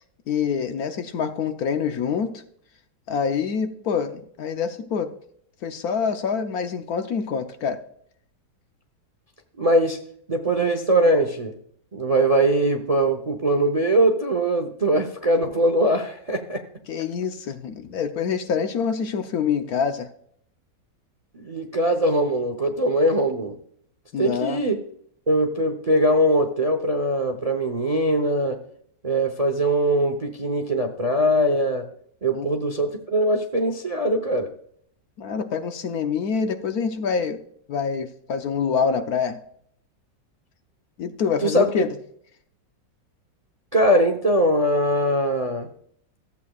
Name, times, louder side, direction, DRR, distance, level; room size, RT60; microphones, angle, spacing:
voice 1, 0.3-2.3 3.1-5.1 5.6-7.8 16.9-20.1 24.1-24.6 32.3-32.5 35.2-37.4 37.7-39.4 41.0-41.9, left 6 dB, 65° left, 7 dB, 1.1 m, -26 dB
voice 2, 9.6-10.0 10.3-11.5 11.9-16.6 21.3-23.6 24.2-24.8 25.3-28.6 29.0-31.8 32.2-34.5 41.4-41.7 43.7-45.7, right 1 dB, 35° right, 5 dB, 0.5 m, -21 dB
14.5 x 8.3 x 2.3 m, 0.65 s
omnidirectional pair, 1.9 m